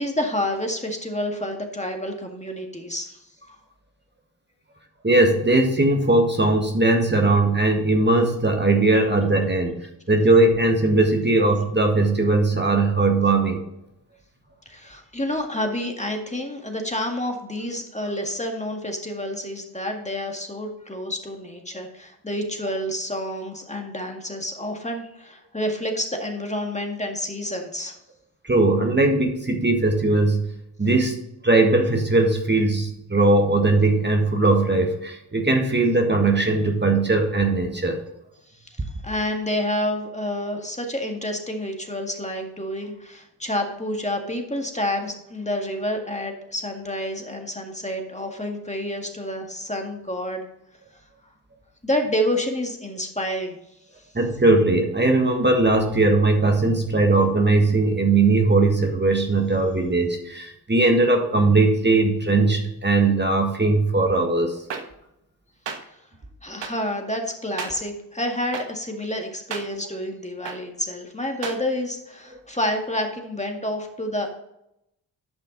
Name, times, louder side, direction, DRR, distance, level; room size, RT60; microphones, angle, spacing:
voice 1, 0.0-3.6 14.7-28.0 38.6-50.4 51.8-53.6 65.9-66.0 66.4-74.4, left 1 dB, 15° left, 3 dB, 1.9 m, -29 dB
voice 2, 5.0-13.6 28.4-30.5 30.8-31.1 31.4-38.0 54.2-64.6, right 2 dB, 25° right, 3 dB, 1.7 m, -19 dB
sound 1, 64.7-64.8 65.7-65.8 66.6-66.7 67.6-67.7 68.5-68.6 69.5-69.6 70.4-70.6 71.4-71.6, right 6 dB, 75° right, 1.3 m, -31 dB
11.0 x 5.6 x 4.0 m, 0.82 s
supercardioid pair, 45°, 44 cm